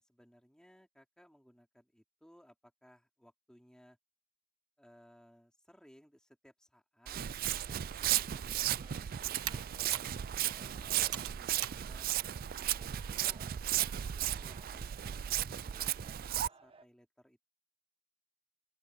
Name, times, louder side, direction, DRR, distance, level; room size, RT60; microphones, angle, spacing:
voice 1, 0.0-4.0 4.8-10.0 10.4-13.4 13.9-14.9 15.2-17.4, equal, 5° left, 3.4 m, -62 dB
Walk footsteps, 7.1-16.5, right 12 dB, 40° right, 0.3 m, -35 dB
Computer keyboard, 8.0-13.2, right 11 dB, 80° right, 1.3 m, -47 dB
sound 1, 8.6-16.9, right 4 dB, 25° right, 1.0 m, -60 dB
open air
head